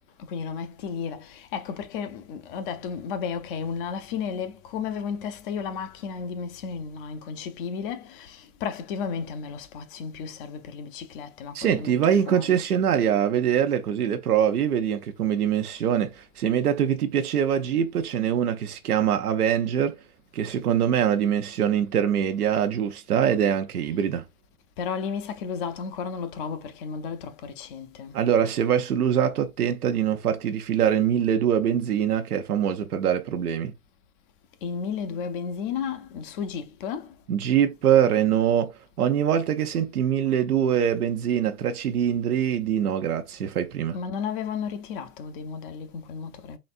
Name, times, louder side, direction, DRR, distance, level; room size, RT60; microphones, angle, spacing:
voice 1, 0.2-12.6 24.8-28.2 34.6-37.1 43.9-46.6, left 6 dB, 35° left, 0.7 m, -33 dB
voice 2, 11.5-20.0 20.3-24.2 28.1-33.7 37.3-44.0, right 9 dB, 85° right, 0.8 m, -23 dB
4.1 x 3.2 x 2.5 m
hypercardioid pair, 130°, 44 cm